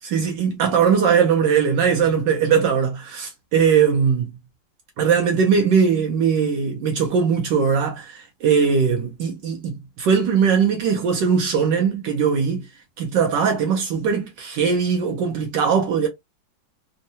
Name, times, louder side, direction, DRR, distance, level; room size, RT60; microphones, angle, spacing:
voice 1, 0.1-4.3 5.0-12.7 13.0-16.1, right 6 dB, 75° right, 1.3 m, -20 dB
3.6 x 2.2 x 2.7 m
omnidirectional pair, 2.1 m